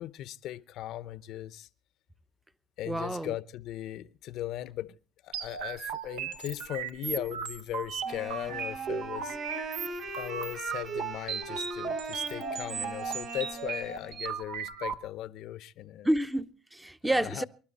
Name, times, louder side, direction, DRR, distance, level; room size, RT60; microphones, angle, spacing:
voice 1, 0.0-1.7 2.8-5.0 5.2-9.4 10.2-16.1 17.1-17.4, left 13 dB, 75° left, 0.7 m, -38 dB
voice 2, 2.9-3.3 16.0-17.4, right 1 dB, 10° right, 0.7 m, -29 dB
sound 1, 5.3-14.9, right 7 dB, 90° right, 1.4 m, -36 dB
Wind instrument woodwind instrument, 8.0-14.2, right 2 dB, 50° right, 4.8 m, -41 dB
25.0 x 12.0 x 4.1 m
cardioid pair, 100°, 0 cm